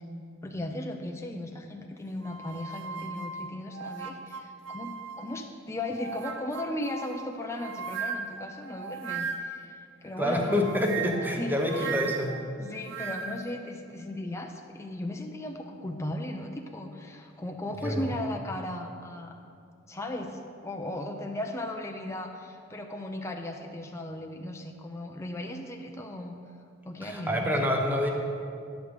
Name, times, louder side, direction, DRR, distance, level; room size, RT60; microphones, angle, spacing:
voice 1, 0.4-10.6 11.3-12.0 12.6-19.3 19.9-26.4 26.9-27.6, left 1 dB, 15° left, 2 dB, 0.5 m, -36 dB
sound 1, 2.2-5.5 5.9-9.7 10.5-13.5, right 6 dB, 70° right, 0.5 m, -37 dB
voice 2, 10.2-12.3 17.8-18.2 27.0-28.1, left 1 dB, 10° right, 1 dB, 0.9 m, -27 dB
10.0 x 6.6 x 5.1 m, 2.3 s
head